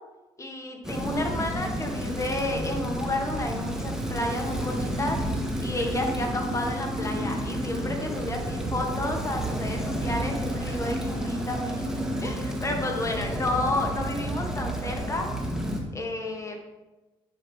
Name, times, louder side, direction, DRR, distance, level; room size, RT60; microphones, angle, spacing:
voice 1, 0.4-5.2 5.6-15.3 15.9-16.6, left 1 dB, 25° left, 2 dB, 1.6 m, -31 dB
Rain, 0.8-15.8, equal, 5° right, 1.5 m, -31 dB
sound 1, 5.8-15.3, right 2 dB, 25° right, 1.1 m, -44 dB
9.9 x 5.2 x 3.6 m, 1.1 s
supercardioid pair, 65°, 12 cm